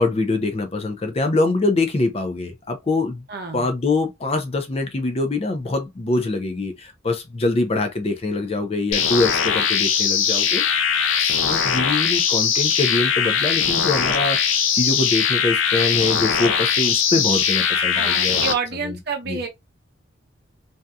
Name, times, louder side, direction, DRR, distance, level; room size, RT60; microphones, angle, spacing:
voice 1, 0.0-3.2 3.5-10.9 11.2-18.5 18.8-19.0 19.3-19.4, left 2 dB, 30° left, 0.5 m, -24 dB
voice 2, 3.3-3.7 17.9-19.5, right 5 dB, 55° right, 0.7 m, -28 dB
sound 1, 8.9-18.5, left 7 dB, 75° left, 0.5 m, -20 dB
2.7 x 2.3 x 2.2 m
head